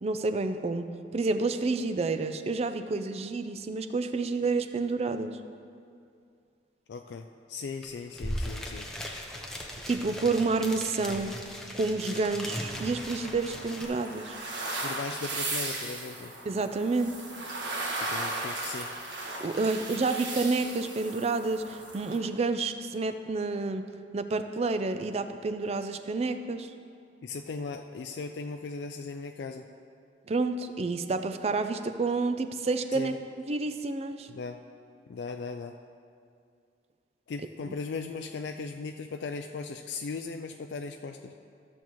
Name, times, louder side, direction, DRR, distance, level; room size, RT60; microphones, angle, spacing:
voice 1, 0.0-5.4 9.9-11.4 11.7-14.4 16.5-17.1 19.4-26.7 30.3-33.2 33.4-34.3 37.7-37.8, right 3 dB, 35° right, 9 dB, 0.4 m, -29 dB
voice 2, 6.9-8.9 14.8-16.3 18.0-18.9 19.6-19.7 27.2-29.7 32.9-33.1 34.3-34.6 35.1-35.8 37.3-41.3, left 4 dB, 70° left, 4 dB, 0.3 m, -38 dB
sound 1, 7.8-7.9 8.1-13.9, equal, 5° left, 0.7 m, -38 dB
sound 2, 12.6-22.2, right 2 dB, 90° right, 1.4 m, -37 dB
14.0 x 7.0 x 3.0 m, 2.3 s
head